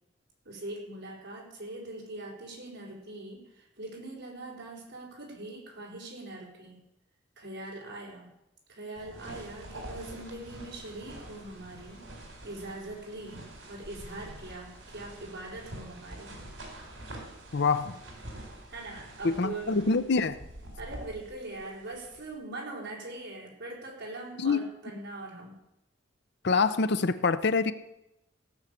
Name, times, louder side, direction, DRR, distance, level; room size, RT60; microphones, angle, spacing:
voice 1, 0.4-6.8 7.4-8.3 8.7-12.0 12.4-16.3 18.3-18.4 18.7-19.8 20.8-25.6, right 2 dB, 60° right, -3 dB, 4.8 m, -42 dB
sound 1, 9.0-22.3, right 1 dB, 80° right, 4.4 m, -46 dB
voice 2, 17.5-18.0 19.2-20.4 24.4-24.6 26.4-27.7, left 4 dB, 60° left, 12 dB, 0.7 m, -25 dB
17.0 x 6.4 x 8.4 m, 0.88 s
head